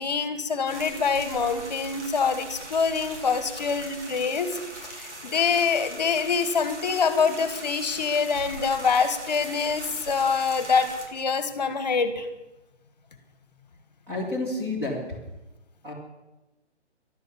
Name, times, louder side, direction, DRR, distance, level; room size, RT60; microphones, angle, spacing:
voice 1, 0.0-4.5 4.8-12.3, left 5 dB, 35° left, 10 dB, 1.6 m, -25 dB
sound 1, 0.7-11.1, right 2 dB, 80° right, 5.0 m, -40 dB
voice 2, 14.1-15.0 15.8-15.9, left 2 dB, 5° right, -3 dB, 1.9 m, -29 dB
13.0 x 12.0 x 8.5 m, 1.0 s
hypercardioid pair, 180°, 35 cm